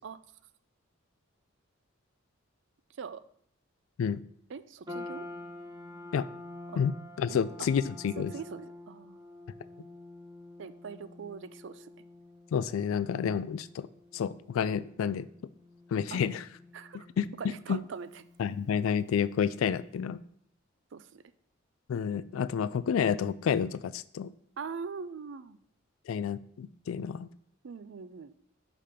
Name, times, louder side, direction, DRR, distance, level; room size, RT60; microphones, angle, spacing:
voice 1, 4.5-5.3 6.7-6.8 7.3-7.4 8.2-9.2 10.6-11.9 13.1-13.2 16.1-16.3 16.7-17.1 17.4-18.2 20.9-21.2 24.6-25.6 27.6-28.3, right 5 dB, 60° right, 14 dB, 0.4 m, -42 dB
sound 1, 4.9-19.3, left 2 dB, 20° right, 0.8 m, -48 dB
voice 2, 6.8-8.3 12.5-13.9 14.1-15.3 15.9-16.4 17.2-17.8 18.4-20.2 21.9-24.3 26.1-27.3, left 7 dB, 85° left, 17 dB, 0.3 m, -30 dB
5.1 x 5.0 x 5.7 m, 0.67 s
head